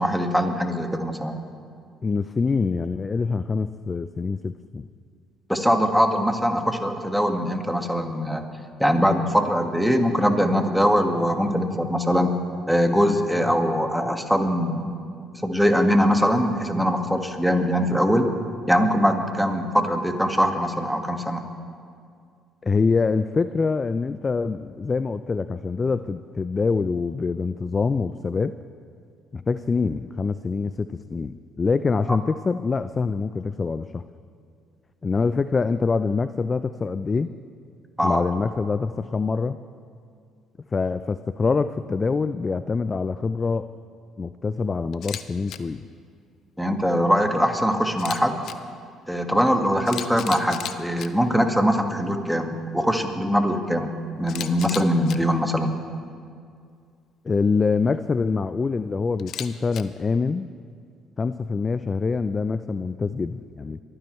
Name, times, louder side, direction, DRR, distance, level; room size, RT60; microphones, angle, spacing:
voice 1, 0.0-1.4 5.5-8.4 8.8-12.3 12.7-14.9 15.4-18.3 18.7-21.4 38.0-38.2 46.6-48.4 49.1-53.9 54.2-55.8, equal, ahead, 4 dB, 1.8 m, -22 dB
voice 2, 2.0-4.9 22.6-28.5 29.3-34.0 35.0-37.3 38.0-39.6 40.7-43.7 44.2-45.8 57.2-60.5 61.2-63.8, left 4 dB, 35° left, 13 dB, 0.4 m, -25 dB
Camera, 44.9-45.2 45.5-45.6 47.9-48.5 49.5-49.6 49.9-51.1 54.3-55.2 59.2-59.8, left 10 dB, 65° left, 0.7 m, -34 dB
23.0 x 14.5 x 3.2 m, 2.2 s
hypercardioid pair, 55°, 0 cm